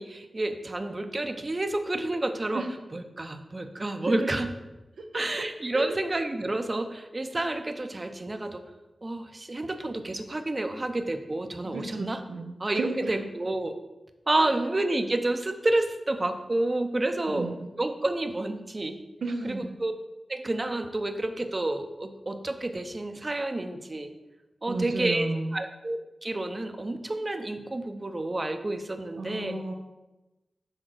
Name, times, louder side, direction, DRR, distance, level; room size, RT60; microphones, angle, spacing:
voice 1, 0.0-2.6 2.9-4.5 5.1-8.6 9.0-12.2 12.6-13.7 14.3-17.5 17.8-19.0 19.4-19.9 20.3-24.1 24.6-25.3 25.5-29.5, right 2 dB, 35° right, 7 dB, 0.7 m, -29 dB
voice 2, 5.0-5.4 5.7-6.0 11.6-13.3 14.4-14.5 17.3-17.7 19.2-19.8 24.7-25.6 29.2-29.7, right 3 dB, 90° right, 2 dB, 0.6 m, -33 dB
6.6 x 3.7 x 6.2 m, 1.1 s
cardioid pair, 55°, 0 cm